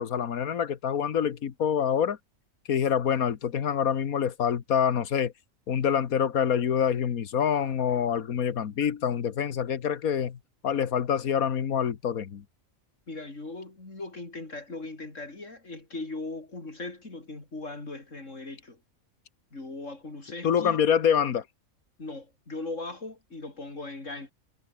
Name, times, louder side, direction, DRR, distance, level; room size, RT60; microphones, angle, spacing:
voice 1, 0.0-2.2 2.7-5.3 5.7-12.4 20.4-21.4, left 8 dB, 90° left, 1.7 m, -26 dB
voice 2, 13.1-18.8 19.5-20.8 22.0-24.3, left 2 dB, 60° left, 4.8 m, -39 dB
omnidirectional pair, 1.4 m